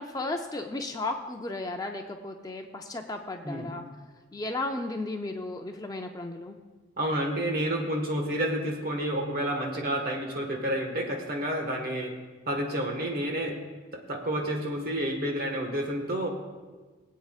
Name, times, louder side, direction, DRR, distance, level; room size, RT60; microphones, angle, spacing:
voice 1, 0.0-3.8 4.3-6.6, left 2 dB, 20° left, 4 dB, 0.5 m, -34 dB
voice 2, 7.0-12.1 12.5-13.6 13.9-16.3, right 1 dB, 50° right, 2 dB, 1.5 m, -30 dB
21.5 x 8.3 x 2.4 m, 1.3 s
head